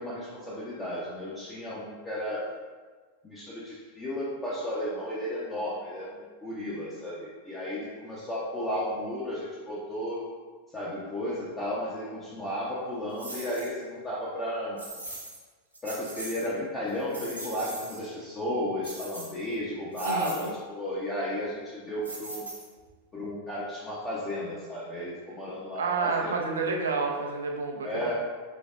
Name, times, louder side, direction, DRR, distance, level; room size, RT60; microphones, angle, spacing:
voice 1, 0.0-2.5 3.2-10.2 10.7-14.8 15.8-22.4 23.1-26.6 27.8-28.1, equal, 15° left, -8 dB, 0.8 m, -33 dB
sound 1, 13.2-13.7 14.8-15.4 15.7-16.5 16.9-18.0 18.8-19.5 19.9-20.5 22.0-22.9, right 2 dB, 85° right, 1.1 m, -40 dB
voice 2, 20.0-20.5 25.8-27.9, right 4 dB, 65° right, 2 dB, 0.6 m, -29 dB
5.1 x 3.9 x 2.4 m, 1.4 s
figure-of-eight pair, 90°, 0 cm